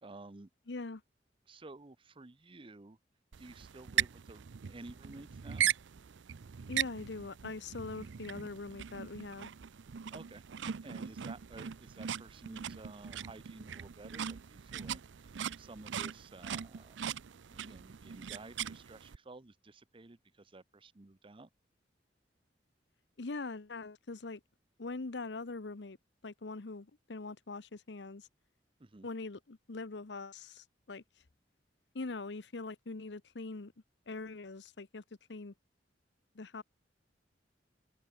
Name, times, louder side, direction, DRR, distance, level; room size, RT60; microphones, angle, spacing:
voice 1, 0.0-0.5 1.5-3.0 3.4-5.7 10.1-17.0 17.3-21.5 28.8-29.1, right 2 dB, 30° right, 0.8 m, -52 dB
voice 2, 0.7-1.0 6.7-9.5 23.2-24.4 24.8-26.0 26.2-28.3 29.0-31.0 31.9-33.7 34.1-35.0 35.3-35.5 36.3-36.6, left 3 dB, 70° left, 0.9 m, -42 dB
sound 1, 3.3-19.2, right 9 dB, 90° right, 0.5 m, -39 dB
open air
head